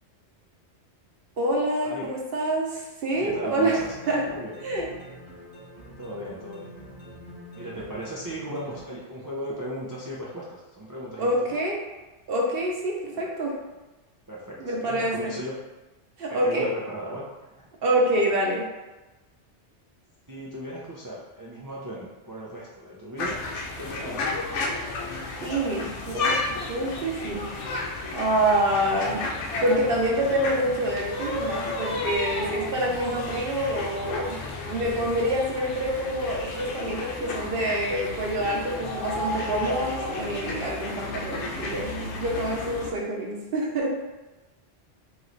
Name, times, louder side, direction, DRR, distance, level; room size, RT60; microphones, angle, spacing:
voice 1, 1.4-3.8 4.1-4.2 4.6-4.9 11.2-11.7 12.3-13.5 14.6-15.4 16.2-16.7 17.8-18.6 25.4-26.4 26.7-27.5 28.1-29.2 29.6-34.4 34.7-43.9, right 1 dB, 60° right, -2 dB, 1.0 m, -26 dB
sound 1, 3.1-8.8, equal, 35° left, 1.4 m, -45 dB
voice 2, 3.2-3.9 4.3-4.5 5.3-5.4 6.0-6.7 7.5-10.4 10.7-11.3 13.2-13.3 14.3-15.6 16.3-17.3 17.6-17.7 18.2-18.3 20.3-23.4 23.8-24.5, equal, 35° right, -5 dB, 0.3 m, -36 dB
sound 2, 23.2-42.9, left 3 dB, 85° left, 1.0 m, -32 dB
3.1 x 3.0 x 3.9 m, 1.1 s
omnidirectional pair, 1.2 m